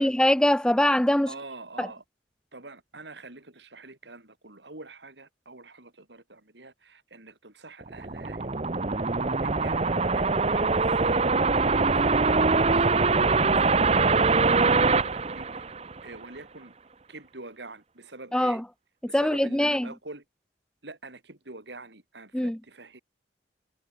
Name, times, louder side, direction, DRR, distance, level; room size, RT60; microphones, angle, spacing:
voice 1, 0.0-1.3 1.8-1.9 18.3-18.6 19.1-19.9 22.3-22.6, left 1 dB, 5° left, 0.4 m, -22 dB
voice 2, 1.3-2.0 2.5-9.1 9.4-15.8 16.0-16.7 17.1-18.6 19.1-20.2 20.8-23.0, right 2 dB, 75° right, 3.9 m, -45 dB
sound 1, 7.8-16.2, right 4 dB, 35° right, 0.9 m, -23 dB
head